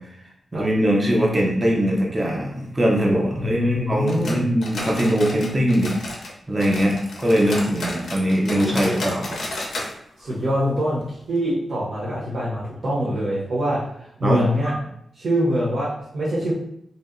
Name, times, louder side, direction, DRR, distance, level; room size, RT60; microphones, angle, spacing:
voice 1, 0.5-5.9 6.5-9.4 14.2-14.7, equal, 20° right, -2 dB, 0.4 m, -21 dB
voice 2, 3.4-4.4 10.2-13.8 14.2-14.7 15.2-16.5, equal, 60° right, -8 dB, 0.6 m, -24 dB
sound 1, 4.1-6.3 6.6-9.9 10.2-10.3 10.7-10.8 11.4-11.5, left 2 dB, 75° left, 0.5 m, -32 dB
2.7 x 2.0 x 2.4 m, 0.73 s
wide cardioid pair, 170°, 0 cm